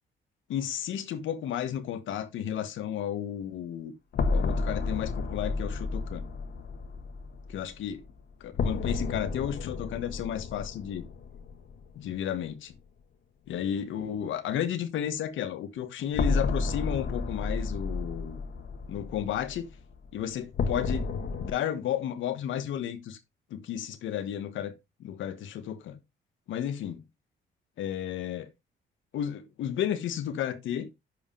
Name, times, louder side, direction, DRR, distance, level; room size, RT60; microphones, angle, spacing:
voice 1, 0.5-3.9 4.3-6.2 7.5-8.0 8.4-11.1 11.9-12.7 13.5-18.4 18.9-19.7 20.1-21.1 21.4-23.2 23.5-24.7 25.0-26.0 26.5-27.0 27.8-28.5 29.1-30.9, left 10 dB, 80° left, 1.3 m, -33 dB
sound 1, 4.1-11.9 12.2-12.3 16.1-21.5, left 4 dB, 60° left, 1.6 m, -32 dB
11.0 x 5.1 x 3.2 m
cardioid pair, 90°, 20 cm